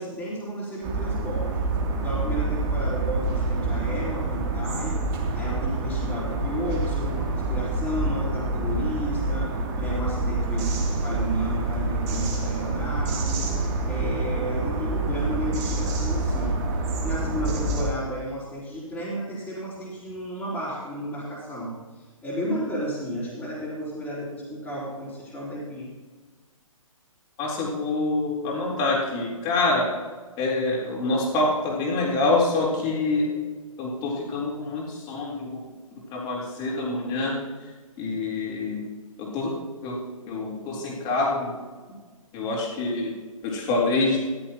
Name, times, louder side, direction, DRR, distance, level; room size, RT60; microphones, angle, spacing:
voice 1, 0.0-1.5 2.0-25.9, equal, 5° left, -10 dB, 4.3 m, -33 dB
sound 1, 0.8-17.9, right 2 dB, 30° right, 2.9 m, -27 dB
voice 2, 27.4-29.9 30.4-33.3 33.8-35.6 36.1-37.7 38.0-38.8 39.2-39.5 39.8-40.0 40.3-41.6 42.3-43.1 43.4-44.2, left 2 dB, 25° left, -3 dB, 3.9 m, -26 dB
14.5 x 14.0 x 3.0 m, 1.4 s
figure-of-eight pair, 135°, 18 cm